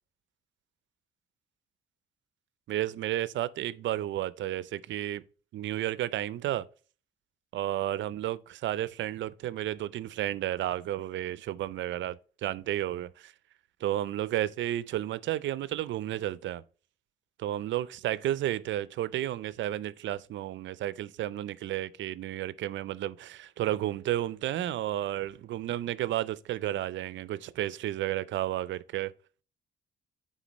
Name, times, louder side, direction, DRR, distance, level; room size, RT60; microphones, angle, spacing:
voice 1, 2.7-5.2 5.5-6.7 7.5-13.3 13.8-16.6 17.4-29.1, right 13 dB, 70° right, 0.5 m, -32 dB
9.2 x 3.8 x 3.0 m
cardioid pair, 90°, 20 cm